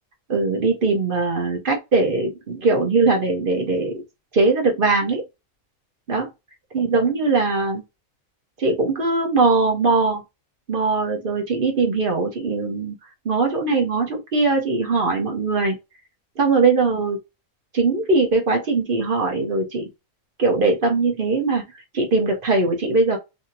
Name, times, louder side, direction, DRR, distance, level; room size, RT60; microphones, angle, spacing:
voice 1, 0.3-4.0 4.3-5.2 6.1-6.2 6.7-7.8 8.6-10.2 10.7-13.0 13.2-15.8 16.4-17.2 17.7-19.9 20.4-21.6 21.9-23.2, right 3 dB, 45° right, 0.8 m, -20 dB
2.7 x 2.7 x 2.7 m
omnidirectional pair, 1.5 m